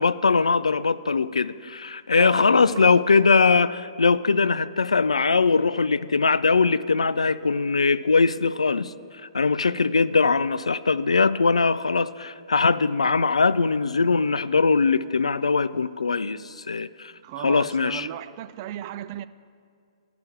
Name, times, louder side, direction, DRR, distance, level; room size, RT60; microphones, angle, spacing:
voice 1, 0.0-8.9 9.3-17.1 17.4-18.1, left 4 dB, 80° left, 0.3 m, -21 dB
voice 2, 2.2-2.8 17.2-19.3, right 12 dB, 35° right, 0.3 m, -36 dB
12.0 x 5.9 x 7.7 m
figure-of-eight pair, 120°, 3 cm